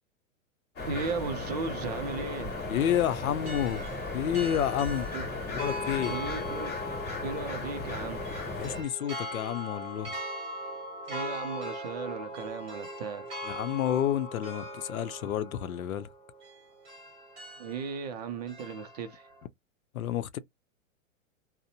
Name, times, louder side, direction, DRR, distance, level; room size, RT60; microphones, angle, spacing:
sound 1, 0.8-8.8, left 2 dB, 25° left, 1.2 m, -36 dB
voice 1, 0.9-2.5 5.1-5.2 6.1-6.7 7.2-8.2 11.1-13.3 17.6-19.3, right 5 dB, 30° right, 0.4 m, -36 dB
sound 2, 2.1-19.4, left 1 dB, 15° right, 1.1 m, -41 dB
voice 2, 2.7-3.8 4.1-5.1 5.5-6.1 8.5-10.2 13.5-16.1 19.9-20.4, left 10 dB, 90° left, 0.6 m, -30 dB
2.5 x 2.1 x 2.6 m
hypercardioid pair, 140°, 41 cm